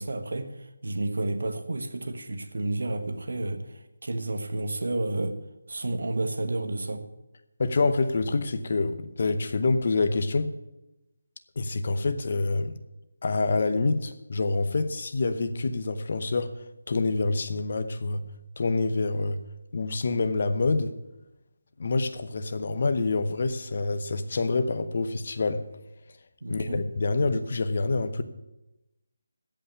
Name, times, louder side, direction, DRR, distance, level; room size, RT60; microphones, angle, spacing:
voice 1, 0.0-5.4 5.7-7.0 26.4-26.8, right 2 dB, 60° right, 1.3 m, -31 dB
voice 2, 7.6-10.5 11.6-12.7 13.2-16.5 16.9-18.2 18.6-19.4 19.7-20.9 21.8-25.6 26.5-28.2, left 3 dB, 30° left, 0.7 m, -26 dB
15.5 x 5.6 x 8.4 m
figure-of-eight pair, 180°, 0 cm